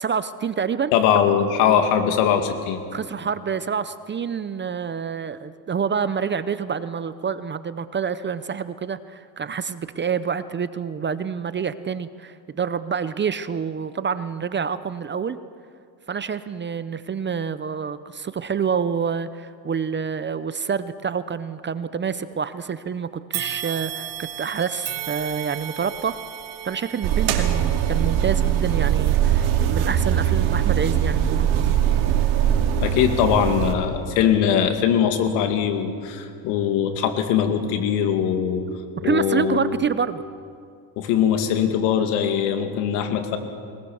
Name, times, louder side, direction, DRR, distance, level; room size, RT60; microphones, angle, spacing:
voice 1, 0.0-0.9 2.9-15.4 16.1-26.2 26.6-31.7 39.0-40.2, right 6 dB, 25° right, 14 dB, 0.6 m, -27 dB
voice 2, 0.9-2.8 32.8-38.6 39.0-39.7 41.0-43.4, left 8 dB, 80° left, 6 dB, 2.4 m, -21 dB
sound 1, 23.3-32.6 33.2-33.3 34.3-34.4, right 11 dB, 65° right, 3.6 m, -37 dB
sound 2, 27.0-33.7, right 10 dB, 85° right, 2.6 m, -21 dB
22.0 x 20.0 x 7.1 m, 2.4 s
cardioid pair, 115°, 50 cm